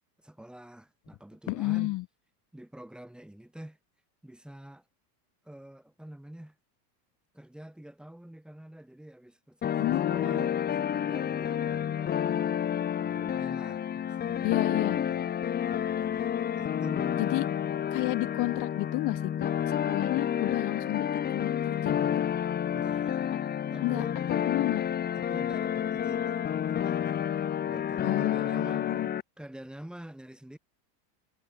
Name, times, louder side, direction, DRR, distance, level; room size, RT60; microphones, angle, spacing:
voice 1, 0.2-1.9 2.5-3.8 4.2-4.8 5.4-6.6 7.3-12.2 13.0-15.3 15.7-17.2 22.7-23.2 23.7-24.1 24.5-24.7 25.1-27.3 27.7-29.0 29.4-30.6, right 1 dB, ahead, 6.5 m, -46 dB
voice 2, 1.5-2.0 9.8-10.4 14.4-15.0 17.2-17.4 17.9-21.1 21.3-22.2 23.8-24.8 28.0-29.1, left 20 dB, 40° left, 3.4 m, -31 dB
sound 1, 9.6-29.2, left 9 dB, 20° left, 1.9 m, -30 dB
supercardioid pair, 170°, 49 cm